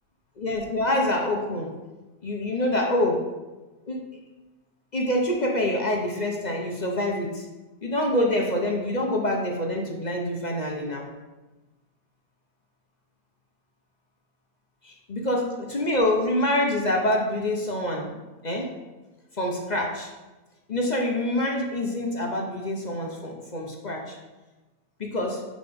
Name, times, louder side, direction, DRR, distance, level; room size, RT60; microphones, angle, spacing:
voice 1, 0.4-1.7 2.2-3.2 3.9-4.0 4.9-7.5 7.8-11.1 14.8-18.7 19.3-20.1 20.7-24.2 25.0-25.4, left 1 dB, 35° left, 0 dB, 0.7 m, -26 dB
5.7 x 5.1 x 5.2 m, 1.1 s
omnidirectional pair, 1.7 m